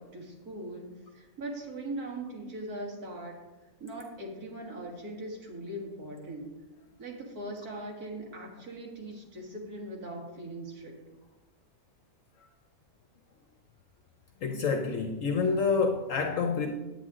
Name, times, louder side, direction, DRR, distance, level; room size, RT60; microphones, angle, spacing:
voice 1, 0.0-3.4 3.8-6.5 7.0-10.9, right 1 dB, 85° right, -1 dB, 2.3 m, -40 dB
voice 2, 14.4-16.7, left 5 dB, 65° left, 4 dB, 1.0 m, -27 dB
9.2 x 9.0 x 3.7 m, 1.1 s
omnidirectional pair, 1.6 m